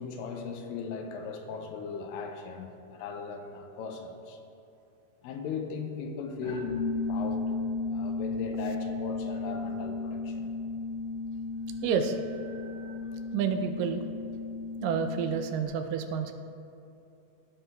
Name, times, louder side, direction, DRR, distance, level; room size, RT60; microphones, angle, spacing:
voice 1, 0.0-4.4 5.2-7.5 7.9-10.5, left 5 dB, 85° left, 4 dB, 2.4 m, -38 dB
sound 1, 6.4-15.7, left 3 dB, 70° left, 0.8 m, -34 dB
voice 2, 11.8-12.2 13.3-14.1 14.8-16.3, right 7 dB, 80° right, 7 dB, 2.1 m, -29 dB
15.5 x 5.7 x 2.3 m, 2.7 s
omnidirectional pair, 4.0 m